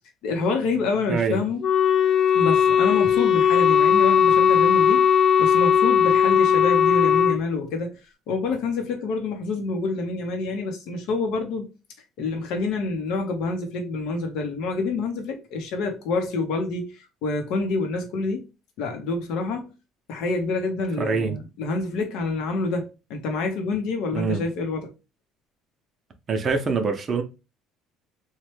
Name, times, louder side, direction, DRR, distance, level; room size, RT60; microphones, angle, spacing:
voice 1, 0.2-1.6 2.3-5.1 5.4-8.0 8.3-11.7 12.2-18.5 18.8-19.7 20.1-24.9, left 3 dB, 70° left, 0.7 m, -27 dB
voice 2, 1.1-1.4 21.0-21.4 24.1-24.4 26.3-27.2, right 5 dB, 35° right, 0.6 m, -24 dB
Wind instrument woodwind instrument, 1.6-7.4, left 8 dB, 45° left, 0.3 m, -18 dB
3.0 x 2.1 x 3.0 m
cardioid pair, 135°, 0 cm